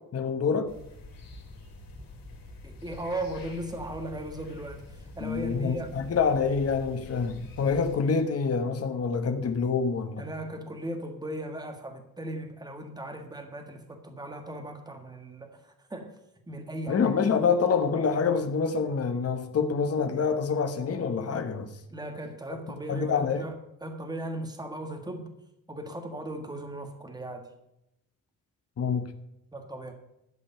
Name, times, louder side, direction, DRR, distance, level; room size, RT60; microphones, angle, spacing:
voice 1, 0.1-0.7 5.2-10.2 16.9-21.7 22.9-23.4 28.8-29.1, left 5 dB, 40° left, 1.2 m, -26 dB
sound 1, 0.7-8.0, left 2 dB, 70° left, 3.6 m, -46 dB
voice 2, 2.6-6.0 10.2-16.1 16.5-17.2 21.9-25.3 25.7-27.5 29.5-29.9, right 1 dB, 10° right, 1.6 m, -37 dB
12.5 x 5.2 x 8.9 m
wide cardioid pair, 145°, 36 cm